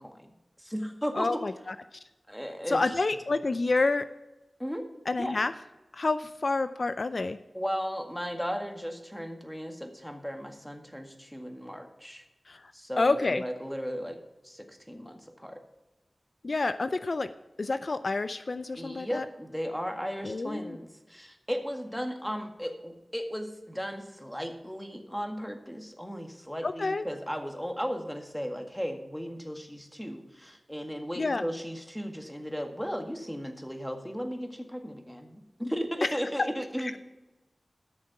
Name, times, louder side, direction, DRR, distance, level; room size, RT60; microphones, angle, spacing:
voice 1, 0.0-1.4 2.3-2.9 3.5-3.6 4.6-4.8 5.2-5.4 7.5-12.2 12.7-14.2 14.4-15.6 18.8-37.0, equal, 5° left, 4 dB, 1.8 m, -36 dB
voice 2, 1.2-1.5 2.7-4.1 5.1-5.5 5.9-7.4 12.5-12.6 13.0-13.4 16.4-17.3 17.6-19.2 20.2-20.8 26.6-27.0 31.2-31.4, left 3 dB, 60° left, 11 dB, 0.4 m, -28 dB
13.0 x 6.6 x 5.8 m, 1.0 s
wide cardioid pair, 55°, 0 cm